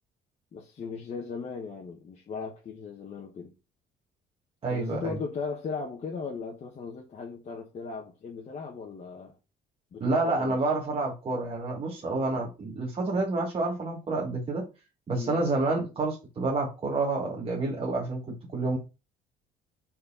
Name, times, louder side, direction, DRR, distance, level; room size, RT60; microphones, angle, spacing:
voice 1, 0.5-3.5 4.7-9.4 9.9-10.6 12.0-12.2 15.1-15.4, left 5 dB, 40° left, 1.2 m, -37 dB
voice 2, 4.6-5.2 10.0-14.6 15.1-18.8, right 3 dB, 35° right, 1.5 m, -29 dB
4.7 x 4.3 x 5.5 m
cardioid pair, 110°, 17 cm